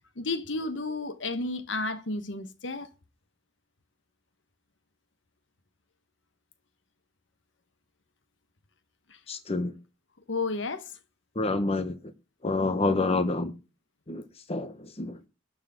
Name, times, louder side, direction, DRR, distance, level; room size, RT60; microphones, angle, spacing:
voice 1, 0.2-2.9 9.1-9.2 10.3-10.9, left 3 dB, 70° left, 1.0 m, -32 dB
voice 2, 9.3-9.7 11.4-12.0 12.4-13.5 14.1-14.2 14.5-15.2, left 2 dB, 35° left, 1.1 m, -27 dB
12.0 x 4.7 x 7.6 m
head